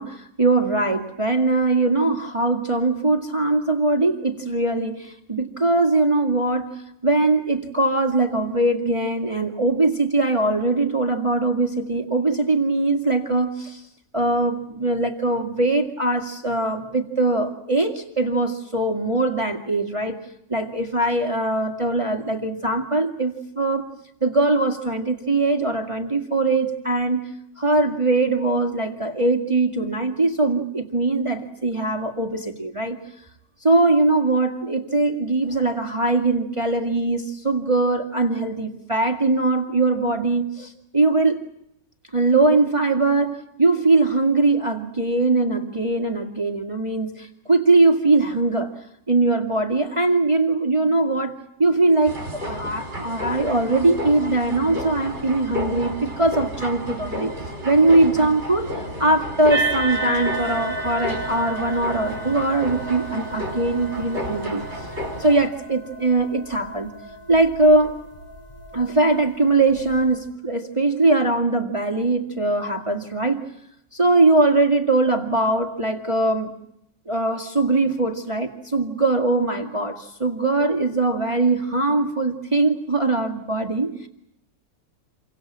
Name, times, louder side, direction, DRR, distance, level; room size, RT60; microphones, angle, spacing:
voice 1, 0.0-13.8 14.1-20.2 20.5-23.9 24.2-27.2 27.6-33.0 33.6-41.4 42.1-48.7 49.1-57.4 57.6-64.9 65.2-66.9 67.3-68.0 68.7-73.4 73.9-76.5 77.1-84.1, right 2 dB, 20° right, 4 dB, 2.0 m, -21 dB
sound 1, 52.0-65.5, equal, 40° right, 5.4 m, -32 dB
sound 2, 59.5-70.1, right 2 dB, 15° left, 5.5 m, -32 dB
29.0 x 24.0 x 7.4 m, 0.76 s
omnidirectional pair, 1.7 m